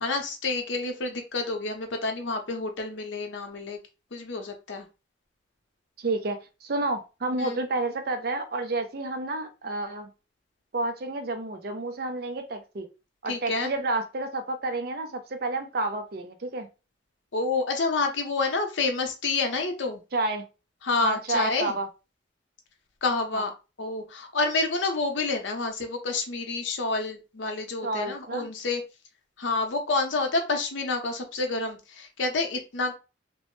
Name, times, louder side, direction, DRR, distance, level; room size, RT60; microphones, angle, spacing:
voice 1, 0.0-3.8 4.1-4.9 7.4-7.6 13.3-13.7 17.3-20.0 20.8-21.8 23.0-23.5 23.8-28.8 29.4-32.9, left 3 dB, 75° left, 0.7 m, -28 dB
voice 2, 6.0-10.1 10.7-12.9 13.2-16.7 20.1-20.4 21.0-21.9 23.3-23.4 27.8-28.5, right 2 dB, 55° right, 0.5 m, -30 dB
3.0 x 2.0 x 3.0 m
head